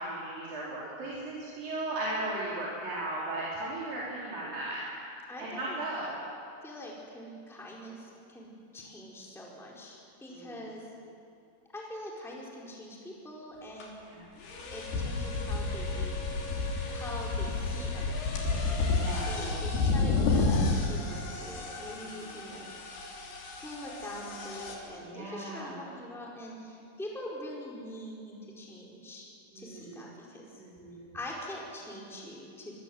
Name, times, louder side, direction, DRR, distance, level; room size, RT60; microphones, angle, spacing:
voice 1, 0.0-4.8 5.4-6.1 10.3-10.6 14.0-14.2 19.0-19.6 22.0-22.1 25.0-25.8 29.5-30.1 30.5-31.1, right 2 dB, 60° right, -7 dB, 6.1 m, -37 dB
voice 2, 5.3-5.8 6.6-8.5 8.7-10.8 11.7-14.0 14.7-16.2 16.9-18.1 18.5-18.8 19.2-22.7 23.6-29.3 29.5-30.6 31.1-32.8, left 1 dB, ahead, -3 dB, 4.3 m, -43 dB
sound 1, 13.8-13.9 14.4-24.8, left 3 dB, 90° left, 5.2 m, -31 dB
25.5 x 23.5 x 8.1 m, 2.6 s
omnidirectional pair, 4.5 m